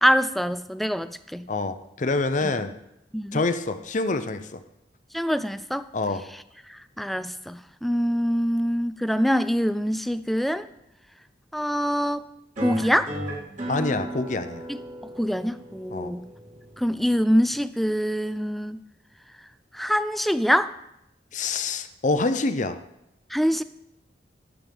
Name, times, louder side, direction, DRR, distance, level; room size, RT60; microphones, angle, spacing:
voice 1, 0.0-1.5 2.4-2.5 3.1-3.4 5.1-5.9 6.7-10.7 11.5-12.3 12.6-13.1 14.7-14.8 15.2-16.3 16.8-18.8 19.7-20.7 23.3-23.6, equal, ahead, 13 dB, 0.3 m, -24 dB
voice 2, 1.5-2.8 3.3-4.6 5.9-6.2 13.7-14.7 15.9-16.1 21.3-22.8, left 3 dB, 40° left, 10 dB, 0.7 m, -26 dB
sound 1, 12.6-17.6, right 1 dB, 40° right, 2.6 m, -36 dB
17.0 x 7.8 x 3.5 m, 0.83 s
head